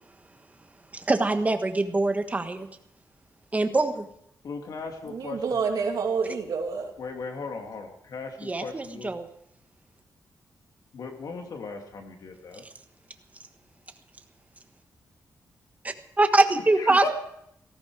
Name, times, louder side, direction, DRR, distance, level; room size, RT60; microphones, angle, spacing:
voice 1, 0.9-2.7 3.5-4.1 8.4-9.3 15.8-17.1, right 2 dB, 20° right, 7 dB, 1.4 m, -24 dB
voice 2, 4.4-5.6 7.0-9.1 10.9-12.6 16.8-17.1, left 4 dB, 70° left, 3 dB, 2.8 m, -37 dB
voice 3, 5.1-6.9 16.9-17.1, right 5 dB, 75° right, 2 dB, 2.8 m, -28 dB
18.0 x 14.5 x 5.0 m, 0.73 s
wide cardioid pair, 125°, 7 cm